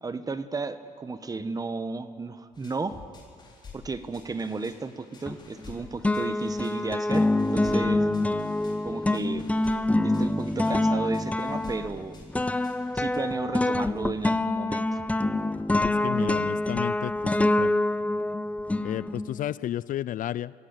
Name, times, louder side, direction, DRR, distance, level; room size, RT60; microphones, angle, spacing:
voice 1, 0.0-3.0 3.7-8.1 8.8-9.4 10.0-12.2 12.9-15.0, right 3 dB, 25° right, 11 dB, 1.2 m, -33 dB
sound 1, 2.5-13.2, left 4 dB, 30° left, 4.5 m, -50 dB
sound 2, 5.3-5.7 6.0-19.5, left 2 dB, 10° left, 0.6 m, -26 dB
voice 2, 16.0-17.7 18.8-20.5, left 12 dB, 60° left, 20 dB, 0.4 m, -32 dB
22.0 x 15.5 x 9.0 m, 2.1 s
cardioid pair, 105°, 16 cm